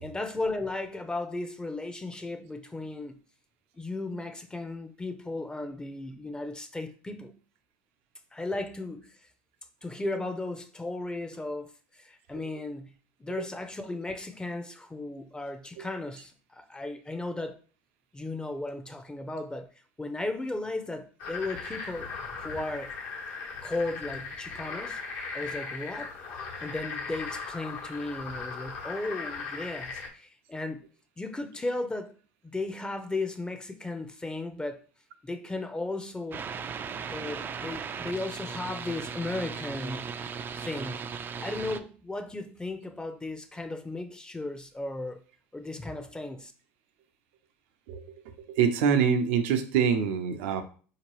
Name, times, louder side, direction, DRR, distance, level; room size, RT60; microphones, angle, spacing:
voice 1, 0.0-3.2 3.7-7.3 8.3-9.1 9.8-17.6 18.1-19.7 20.0-23.0 23.6-25.0 25.3-26.1 26.6-30.8 31.2-32.2 32.4-34.8 35.2-36.4 37.1-40.0 40.6-41.1 41.4-45.2 45.5-46.5, left 2 dB, 15° left, 0.6 m, -35 dB
sound 1, 21.2-30.1, left 4 dB, 65° left, 1.1 m, -38 dB
sound 2, 36.3-41.8, right 6 dB, 30° right, 0.4 m, -37 dB
voice 2, 47.9-50.6, right 7 dB, 75° right, 0.6 m, -26 dB
4.4 x 2.9 x 3.0 m
hypercardioid pair, 85°, 7 cm